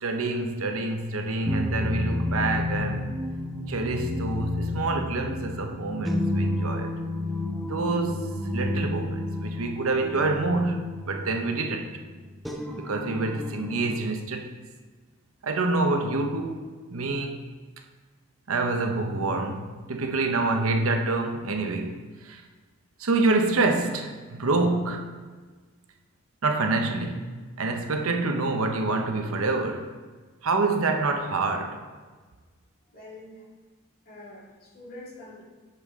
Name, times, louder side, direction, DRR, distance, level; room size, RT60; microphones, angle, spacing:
voice 1, 0.0-3.1 3.7-6.9 7.7-8.3 8.5-11.9 12.8-14.5 15.4-16.6 16.9-17.4 18.5-22.4 23.0-25.1 26.4-27.2 27.6-29.9 30.4-31.8, right 3 dB, 80° right, 4 dB, 0.8 m, -27 dB
sound 1, 1.5-14.0, left 1 dB, ahead, 0.6 m, -31 dB
voice 2, 32.9-33.5 34.1-35.4, left 1 dB, 45° left, -5 dB, 2.2 m, -45 dB
8.7 x 6.6 x 3.6 m, 1.4 s
head